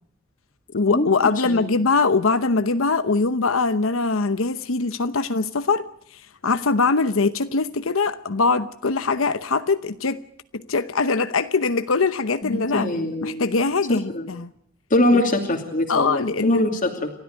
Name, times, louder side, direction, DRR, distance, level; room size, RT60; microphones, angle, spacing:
voice 1, 0.7-5.8 6.1-10.2 10.5-12.9 13.2-14.5 15.1-15.2 15.9-16.6, left 4 dB, 85° left, 11 dB, 0.9 m, -22 dB
voice 2, 12.4-13.5 13.9-14.3 14.9-17.1, left 1 dB, 40° left, 0 dB, 2.7 m, -23 dB
30.0 x 13.0 x 9.3 m, 0.68 s
head